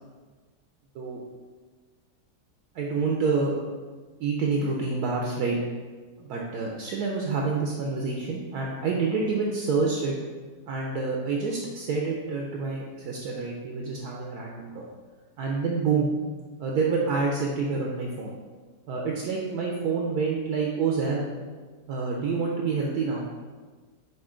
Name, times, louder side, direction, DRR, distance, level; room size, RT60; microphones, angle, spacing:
voice 1, 2.7-3.6 4.2-5.6 6.2-10.1 10.7-14.8 15.4-16.1 16.6-18.4 18.9-21.3 21.9-23.3, right 4 dB, 70° right, -2 dB, 1.0 m, -27 dB
5.4 x 2.5 x 3.6 m, 1.4 s
omnidirectional pair, 1.8 m